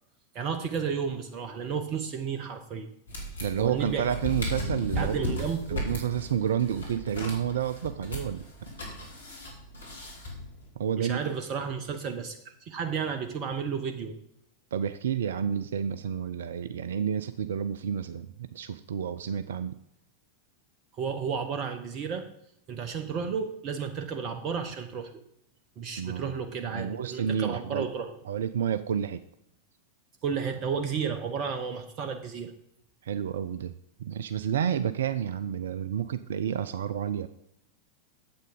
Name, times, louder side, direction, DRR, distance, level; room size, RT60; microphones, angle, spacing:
voice 1, 0.3-2.9 3.6-4.0 5.0-5.9 11.0-14.2 20.9-22.3 22.7-25.2 25.8-28.2 30.2-32.5, right 6 dB, 40° right, 7 dB, 0.9 m, -32 dB
sound 1, 3.1-10.7, equal, 70° left, 2.8 m, -36 dB
voice 2, 3.4-5.4 5.7-8.5 10.8-11.2 14.7-19.8 26.0-26.4 26.7-27.9 28.3-29.2 33.0-37.3, right 8 dB, 60° right, 13 dB, 0.4 m, -30 dB
9.1 x 7.9 x 5.2 m, 0.77 s
figure-of-eight pair, 90°, 0 cm